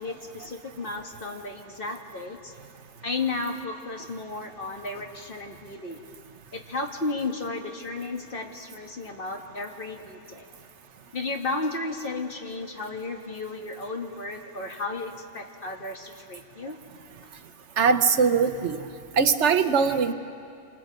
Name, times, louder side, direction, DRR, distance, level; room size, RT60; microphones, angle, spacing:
voice 1, 0.0-2.5 3.0-6.0 6.5-10.5 11.1-16.8 19.9-20.0, left 3 dB, 45° left, 2 dB, 1.9 m, -33 dB
voice 2, 17.8-18.8 19.1-20.1, right 5 dB, 65° right, 8 dB, 1.2 m, -21 dB
28.0 x 27.0 x 5.3 m, 2.4 s
omnidirectional pair, 1.3 m